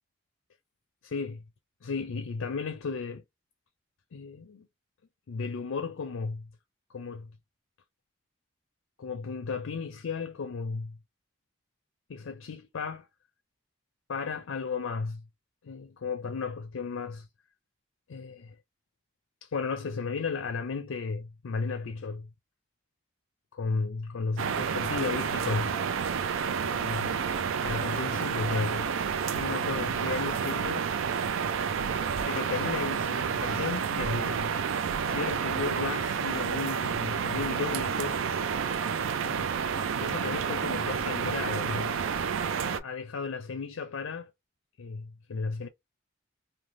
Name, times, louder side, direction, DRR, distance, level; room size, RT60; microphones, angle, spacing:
voice 1, 1.0-1.4 1.8-3.2 4.1-4.7 5.3-6.5 6.9-7.3 9.0-11.0 12.1-13.1 14.1-15.2 15.6-17.3 18.1-18.6 19.4-22.3 23.5-25.8 26.7-27.2 27.6-29.0 29.3-30.9 32.3-34.6 35.0-38.2 39.2-39.5 40.0-42.0 42.6-44.3 44.8-45.7, left 4 dB, 90° left, 0.4 m, -34 dB
sound 1, 24.4-42.8, right 6 dB, 85° right, 0.4 m, -30 dB
3.2 x 2.2 x 2.5 m
head